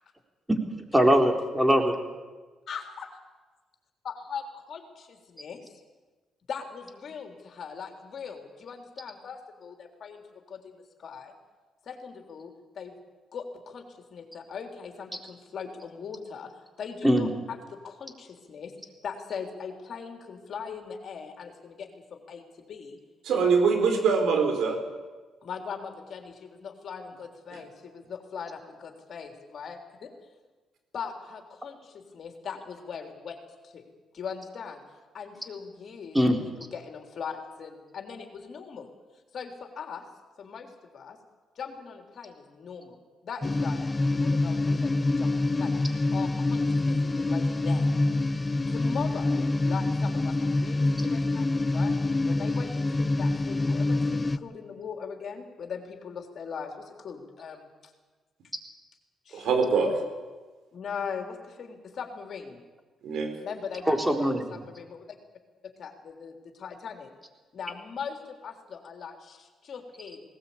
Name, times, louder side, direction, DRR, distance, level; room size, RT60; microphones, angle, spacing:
voice 1, 0.9-2.0 17.0-17.3 36.1-36.4 63.9-64.4, equal, 10° right, 4 dB, 4.0 m, -21 dB
voice 2, 2.7-3.1 4.0-4.4 4.7-5.8 6.5-11.3 11.8-12.5 12.8-12.9 13.3-16.5 16.8-18.7 19.0-23.0 23.3-23.5 25.4-30.1 30.9-33.4 33.6-33.8 34.1-34.8 35.1-36.3 36.7-38.9 39.3-40.0 40.4-41.2 41.6-43.0 43.2-45.7 46.1-47.9 48.7-51.9 52.3-57.9 59.3-59.6 60.7-62.6 63.4-65.0 65.6-67.1 67.5-70.2, left 6 dB, 60° left, 4 dB, 3.6 m, -40 dB
voice 3, 23.2-24.8 59.3-59.9 63.0-63.3, right 5 dB, 75° right, 6 dB, 4.5 m, -23 dB
sound 1, 43.4-54.4, left 2 dB, 25° left, 0.9 m, -26 dB
19.5 x 18.5 x 8.7 m, 1.3 s
supercardioid pair, 65°, 0 cm